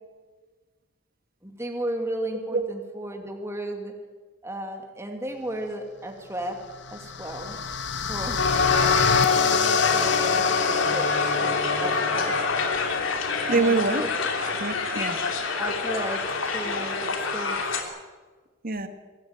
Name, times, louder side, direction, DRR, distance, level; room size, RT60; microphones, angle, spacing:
voice 1, 1.4-3.9 4.4-6.6 6.9-7.6 8.1-8.4 8.7-10.6 10.9-12.4 13.4-14.1 15.5-17.6, right 1 dB, 15° right, 3 dB, 2.4 m, -34 dB
voice 2, 2.3-2.7 13.5-14.0 14.5-15.2 18.6-18.9, right 3 dB, 45° right, 8 dB, 1.5 m, -25 dB
sound 1, 6.6-11.7, left 6 dB, 60° left, 1.0 m, -28 dB
Crowd, 8.4-17.8, left 4 dB, 75° left, 3.0 m, -25 dB
24.0 x 14.0 x 9.2 m, 1.4 s
head